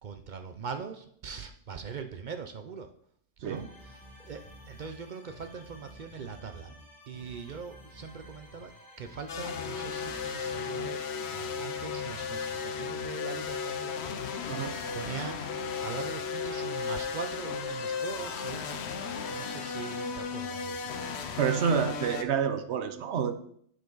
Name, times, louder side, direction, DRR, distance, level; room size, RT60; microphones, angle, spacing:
voice 1, 0.0-2.9 3.4-6.7 7.1-14.0 14.3-15.5 15.8-18.9 19.3-21.0, right 6 dB, 55° right, 7 dB, 0.5 m, -42 dB
sound 1, 3.4-10.8, equal, ahead, 2.4 m, -51 dB
sound 2, 9.3-22.2, left 5 dB, 65° left, 0.9 m, -35 dB
voice 2, 14.5-14.8 21.4-23.3, right 7 dB, 70° right, 10 dB, 0.9 m, -28 dB
9.0 x 5.1 x 3.9 m, 0.65 s
omnidirectional pair, 1.2 m